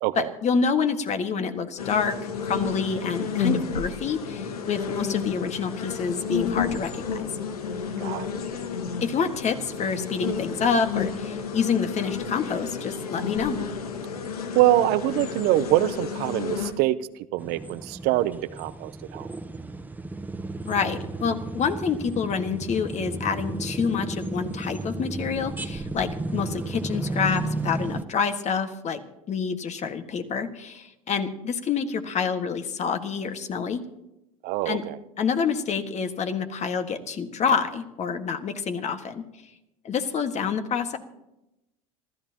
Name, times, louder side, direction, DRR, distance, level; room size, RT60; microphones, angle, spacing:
voice 1, 0.1-7.3 9.0-13.6 20.6-29.0 29.3-33.8 34.6-34.8 35.2-39.2 39.8-41.0, left 6 dB, 40° left, 7 dB, 1.7 m, -27 dB
sound 1, 1.8-16.7, left 6 dB, 90° left, 1.5 m, -31 dB
voice 2, 14.5-17.0 17.3-19.3 34.4-35.0, right 15 dB, 55° right, 14 dB, 0.7 m, -24 dB
sound 2, 17.4-28.0, right 2 dB, 10° right, 0.9 m, -33 dB
27.0 x 14.0 x 2.9 m, 0.90 s
hypercardioid pair, 85°, 19 cm